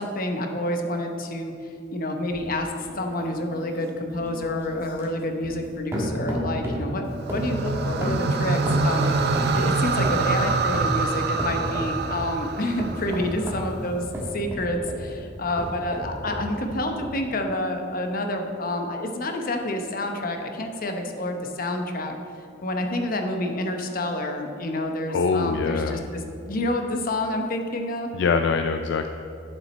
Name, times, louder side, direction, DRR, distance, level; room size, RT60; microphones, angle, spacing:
voice 1, 0.0-1.5 1.9-2.7 3.0-14.0 14.3-22.1 22.6-28.1, left 1 dB, 50° left, 4 dB, 0.9 m, -28 dB
sound 1, 2.3-5.7 5.9-6.9 7.3-9.6 10.0-11.0 11.4-12.3 12.8-15.1 15.5-16.5 17.0-17.1, equal, 15° right, 1.5 m, -32 dB
sound 2, 7.2-13.5, right 3 dB, 60° right, 0.5 m, -25 dB
voice 2, 25.1-26.0 28.1-29.1, left 4 dB, 65° left, 7 dB, 0.3 m, -23 dB
8.8 x 7.4 x 4.2 m, 2.6 s
head